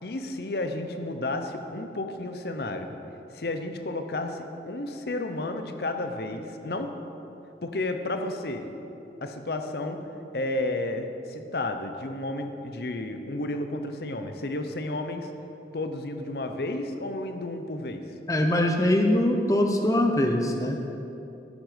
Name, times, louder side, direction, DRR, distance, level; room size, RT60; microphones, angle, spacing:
voice 1, 0.0-2.9 3.3-6.9 7.6-8.7 9.2-10.0 10.3-15.3 15.7-18.0, left 2 dB, 65° left, 6 dB, 0.7 m, -32 dB
voice 2, 18.3-20.7, left 1 dB, 20° left, 3 dB, 0.6 m, -22 dB
13.5 x 6.3 x 5.1 m, 2.9 s
head